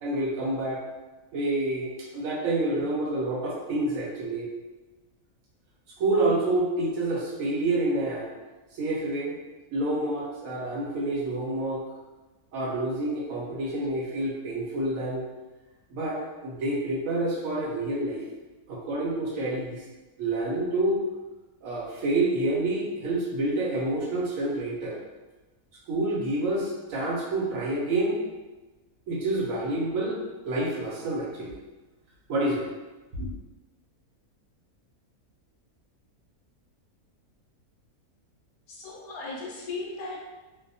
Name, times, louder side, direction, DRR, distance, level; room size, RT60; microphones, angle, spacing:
voice 1, 0.0-0.8 1.3-4.5 6.0-8.3 8.7-9.4 9.7-11.8 12.5-15.3 15.9-18.2 18.7-19.8 20.2-21.0 21.6-25.0 25.9-28.2 29.1-31.6 32.3-32.7 33.1-33.3, right 2 dB, 70° right, -5 dB, 0.9 m, -28 dB
voice 2, 38.7-40.2, left 3 dB, 80° left, -1 dB, 1.1 m, -36 dB
2.6 x 2.1 x 2.6 m, 1.2 s
omnidirectional pair, 1.6 m